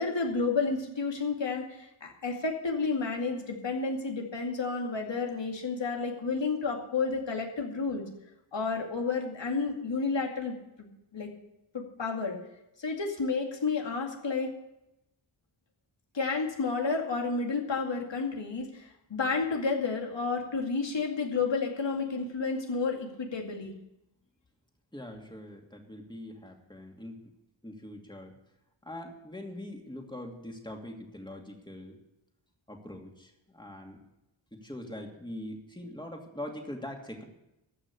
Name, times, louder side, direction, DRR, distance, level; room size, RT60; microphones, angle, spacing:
voice 1, 0.0-8.0 8.5-10.5 11.1-11.3 11.7-12.4 12.8-14.5 16.1-23.7, left 4 dB, 65° left, 1 dB, 2.4 m, -31 dB
voice 2, 24.9-27.3 27.6-28.4 28.8-32.0 32.7-34.0 34.5-37.2, left 1 dB, 10° left, 2 dB, 2.5 m, -42 dB
14.5 x 5.9 x 9.8 m, 0.90 s
wide cardioid pair, 65°, 48 cm